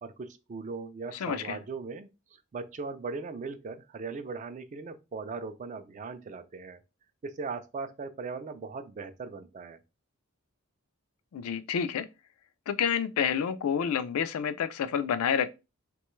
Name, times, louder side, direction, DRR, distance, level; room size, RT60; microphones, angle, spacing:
voice 1, 0.0-6.8 7.2-9.8, right 4 dB, 35° right, 0.3 m, -39 dB
voice 2, 1.1-1.6 11.3-12.1 12.7-15.5, left 7 dB, 85° left, 0.4 m, -29 dB
3.0 x 2.2 x 3.0 m
head